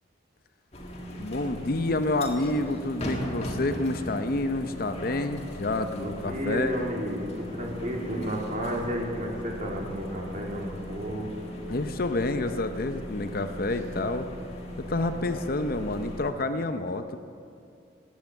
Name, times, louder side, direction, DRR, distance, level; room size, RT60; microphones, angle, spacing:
sound 1, 0.7-16.3, equal, 30° left, 1.8 m, -38 dB
voice 1, 1.2-6.7 11.7-14.3 14.9-17.2, left 2 dB, 45° left, 8 dB, 0.7 m, -28 dB
voice 2, 6.0-11.3, equal, 40° right, -1 dB, 2.8 m, -32 dB
18.5 x 9.4 x 7.4 m, 2.5 s
head